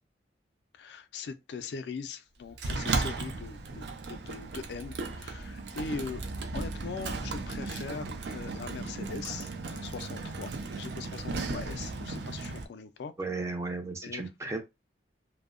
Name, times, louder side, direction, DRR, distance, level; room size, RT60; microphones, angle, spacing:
voice 1, 0.7-6.2 6.5-13.1 14.0-14.3, left 5 dB, 75° left, 0.3 m, -41 dB
Sliding door, 2.6-12.6, right 3 dB, 75° right, 0.4 m, -36 dB
voice 2, 13.2-14.6, right 3 dB, 15° right, 0.4 m, -34 dB
2.6 x 2.0 x 2.4 m
head